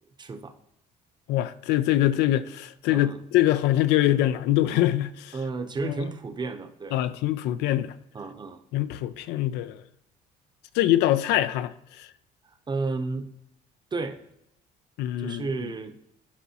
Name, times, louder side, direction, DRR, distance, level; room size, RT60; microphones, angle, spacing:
voice 1, 0.2-0.5 2.9-3.2 5.3-7.0 8.1-8.6 12.4-13.3 13.9-14.2 15.2-16.0, right 3 dB, 25° right, 0.7 m, -32 dB
voice 2, 1.3-5.3 5.8-6.0 6.9-7.9 8.7-9.8 10.7-12.1 15.0-15.5, left 13 dB, 85° left, 0.4 m, -24 dB
11.5 x 4.7 x 2.8 m
cardioid pair, 110°, 17 cm